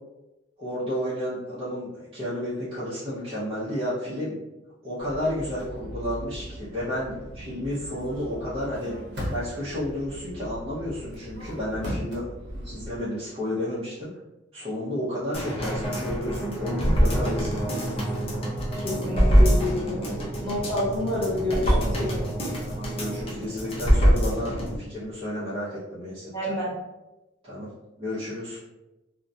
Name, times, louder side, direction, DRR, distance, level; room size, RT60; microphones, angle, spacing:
voice 1, 0.6-4.4 4.8-8.9 9.3-12.2 12.5-14.1 14.5-17.6 22.6-26.3 27.4-27.7 28.0-28.6, left 1 dB, 30° right, -11 dB, 0.6 m, -31 dB
Subway metro underground, 5.0-13.0, equal, 90° right, 0.5 m, -41 dB
sound 1, 5.3-5.7 8.6-9.7 11.1-12.2, equal, 60° right, 0.8 m, -35 dB
sound 2, 15.3-24.8 25.1-25.2, equal, 30° left, 0.5 m, -24 dB
voice 2, 18.8-20.1 20.4-22.3 26.3-26.8, left 1 dB, 15° left, -11 dB, 1.2 m, -29 dB
2.3 x 2.0 x 2.5 m, 1.0 s
head